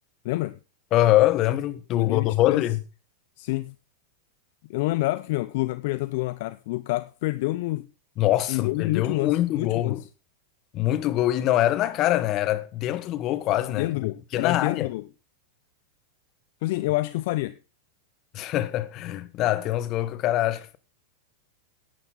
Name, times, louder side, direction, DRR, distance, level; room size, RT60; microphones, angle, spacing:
voice 1, 0.2-0.6 1.9-2.7 3.4-3.7 4.7-7.9 8.5-10.0 13.7-15.0 16.6-17.6, left 19 dB, 60° left, 0.5 m, -28 dB
voice 2, 0.9-2.8 8.2-10.0 10.7-14.9 18.3-20.8, left 14 dB, 45° left, 1.3 m, -24 dB
11.5 x 10.5 x 3.9 m
hypercardioid pair, 105°, 0 cm